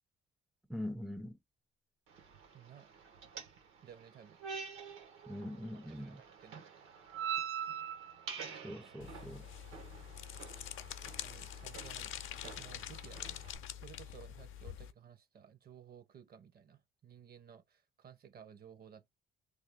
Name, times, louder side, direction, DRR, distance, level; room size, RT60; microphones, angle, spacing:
voice 1, 0.7-1.4 5.3-6.2 8.6-9.5, left 1 dB, ahead, 0.4 m, -42 dB
sound 1, 2.1-13.6, right 8 dB, 85° right, 1.4 m, -46 dB
voice 2, 2.5-3.0 3.8-4.4 5.7-7.0 10.9-12.1 12.6-19.1, right 8 dB, 50° right, 0.7 m, -56 dB
sound 2, 9.0-14.9, left 11 dB, 80° left, 0.6 m, -46 dB
3.3 x 2.3 x 3.5 m
cardioid pair, 105°, 20 cm